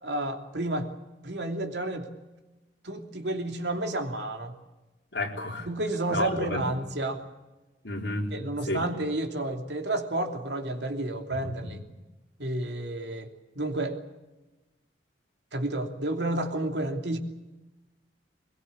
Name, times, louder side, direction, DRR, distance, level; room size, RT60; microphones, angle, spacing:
voice 1, 0.0-0.9 1.2-2.1 2.8-4.5 5.7-7.2 8.3-11.8 12.4-13.3 13.5-14.0 15.5-17.2, right 2 dB, 70° right, 4 dB, 3.0 m, -30 dB
voice 2, 5.1-5.7 6.1-6.7 7.8-8.3 8.7-8.9 11.4-11.5, left 2 dB, 75° left, 1 dB, 4.2 m, -31 dB
23.0 x 21.5 x 8.6 m, 1.1 s
head